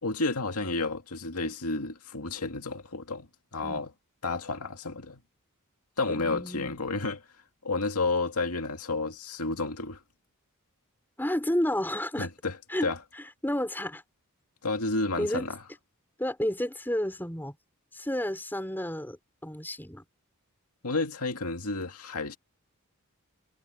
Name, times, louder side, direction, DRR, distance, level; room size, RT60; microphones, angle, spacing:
voice 1, 0.0-3.3 3.5-3.9 4.2-5.2 6.0-7.2 7.6-10.0 12.2-12.6 12.8-13.0 14.6-15.6 20.8-22.4, left 3 dB, 85° left, 2.2 m, -31 dB
voice 2, 6.1-6.8 11.2-12.3 12.7-14.0 15.2-15.5 16.2-17.6 17.9-19.2 19.4-20.0, left 1 dB, 10° left, 4.5 m, -31 dB
head